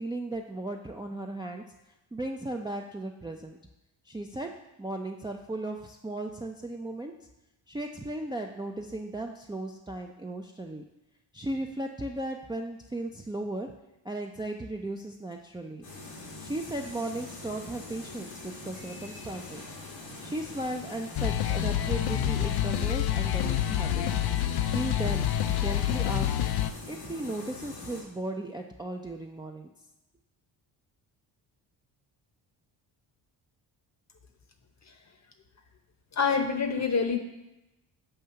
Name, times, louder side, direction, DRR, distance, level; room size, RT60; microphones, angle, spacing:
voice 1, 0.0-1.6 2.1-3.6 4.1-4.5 4.8-7.1 7.7-10.8 11.3-13.7 14.0-15.8 16.4-19.6 20.2-24.0 24.6-26.3 26.9-29.7, right 1 dB, 10° right, 1 dB, 0.4 m, -36 dB
sound 1, 15.8-28.0, left 2 dB, 90° left, 1.8 m, -43 dB
sound 2, 21.1-26.7, left 11 dB, 55° left, 0.5 m, -27 dB
voice 2, 36.1-37.2, left 5 dB, 35° left, 6 dB, 0.9 m, -26 dB
6.8 x 2.7 x 5.6 m, 0.97 s
supercardioid pair, 60°, 48 cm